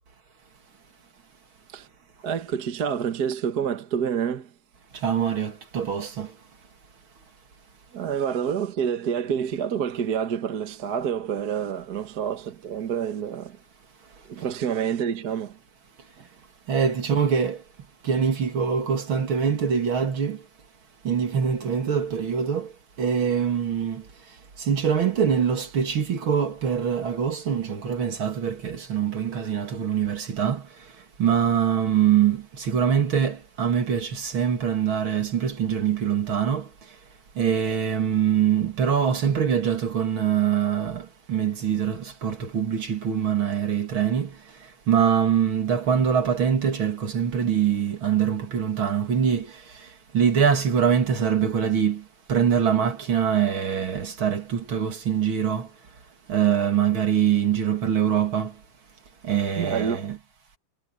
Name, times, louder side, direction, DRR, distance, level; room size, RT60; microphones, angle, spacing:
voice 1, 2.2-4.5 7.9-13.6 14.3-15.6 59.6-60.1, right 8 dB, 50° right, 1.7 m, -28 dB
voice 2, 4.9-6.3 16.7-17.6 18.0-20.4 21.0-22.7 23.0-24.0 24.6-30.7 31.2-36.7 37.4-44.4 44.9-49.6 50.1-52.0 52.3-55.7 56.3-58.5 59.2-60.2, right 8 dB, 70° right, 3.1 m, -24 dB
omnidirectional pair, 2.4 m